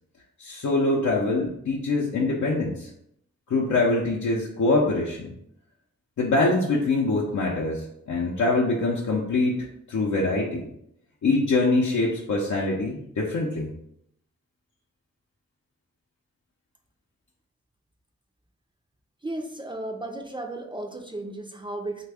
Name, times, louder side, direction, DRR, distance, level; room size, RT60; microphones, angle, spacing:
voice 1, 0.4-2.9 3.5-5.3 6.2-10.7 11.2-13.7, left 2 dB, 75° left, -3 dB, 0.6 m, -24 dB
voice 2, 19.2-22.1, right 2 dB, 15° right, 3 dB, 0.4 m, -34 dB
3.3 x 2.2 x 3.4 m, 0.75 s
wide cardioid pair, 70°, 30 cm